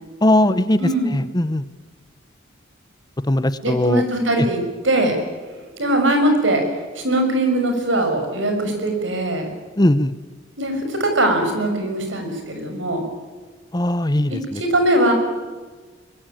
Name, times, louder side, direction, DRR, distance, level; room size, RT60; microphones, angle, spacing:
voice 1, 0.2-1.7 3.3-4.0 4.4-4.5 9.8-10.1 13.7-14.6, left 1 dB, 20° left, 14 dB, 0.7 m, -19 dB
voice 2, 0.8-1.1 3.6-5.2 5.8-6.6 7.0-9.4 10.6-13.0 14.3-15.1, right 1 dB, 70° right, 5 dB, 6.1 m, -21 dB
24.0 x 21.0 x 9.0 m, 1.4 s
head